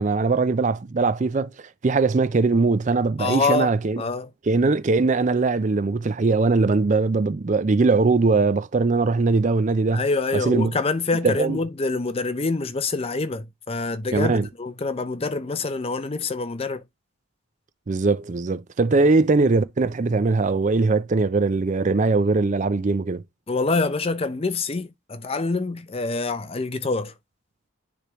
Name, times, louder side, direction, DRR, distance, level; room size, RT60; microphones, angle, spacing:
voice 1, 0.0-4.0 4.5-10.0 10.3-10.7 11.2-11.6 14.1-14.5 17.9-23.2, right 3 dB, 35° right, 0.4 m, -21 dB
voice 2, 3.2-3.7 4.0-4.3 9.9-16.8 23.5-27.1, left 3 dB, 30° left, 0.5 m, -26 dB
9.9 x 3.4 x 3.0 m
head